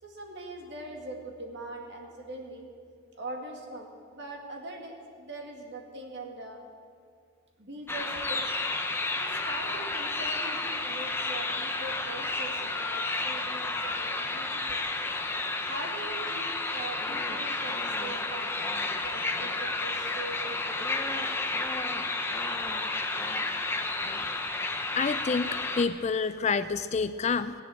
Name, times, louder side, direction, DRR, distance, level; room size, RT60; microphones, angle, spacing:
voice 1, 0.0-2.7 3.1-6.6 7.6-8.5 9.1-14.9 15.6-18.5 18.9-21.2 25.4-25.5, right 2 dB, 50° right, 2 dB, 2.2 m, -42 dB
sound 1, 7.9-25.8, left 2 dB, 10° left, 0.8 m, -31 dB
voice 2, 24.9-25.5 25.8-27.5, left 5 dB, 30° left, 13 dB, 0.3 m, -28 dB
16.0 x 10.5 x 7.8 m, 2.2 s
head